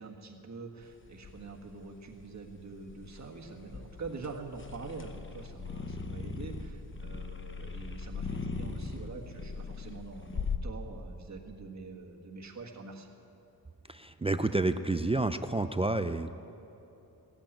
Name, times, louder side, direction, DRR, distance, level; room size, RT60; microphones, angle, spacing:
voice 1, 0.0-13.1, right 4 dB, 45° right, 1 dB, 1.7 m, -45 dB
sound 1, 0.8-10.6, left 4 dB, 30° left, 0.9 m, -40 dB
voice 2, 13.9-16.3, right 2 dB, 15° right, 10 dB, 0.3 m, -29 dB
16.0 x 8.9 x 9.8 m, 3.0 s
wide cardioid pair, 120°, 39 cm